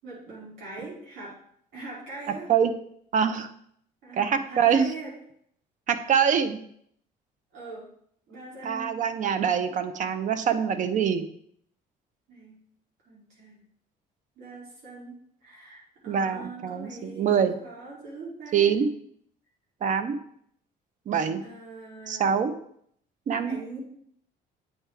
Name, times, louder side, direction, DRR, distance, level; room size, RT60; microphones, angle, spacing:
voice 1, 0.0-1.4 1.7-2.5 4.0-5.2 7.5-7.9 8.3-8.9 12.3-12.6 13.0-13.6 14.3-18.7 21.4-22.3 23.5-23.8, right 3 dB, 85° right, -6 dB, 3.2 m, -42 dB
voice 2, 3.1-3.5 4.2-4.9 5.9-6.6 8.6-11.2 16.1-17.5 18.5-18.9 19.8-20.2 21.1-21.4 22.1-22.5 23.3-23.6, right 7 dB, 50° right, 10 dB, 0.7 m, -24 dB
8.5 x 4.8 x 3.4 m, 0.67 s
cardioid pair, 110°, 17 cm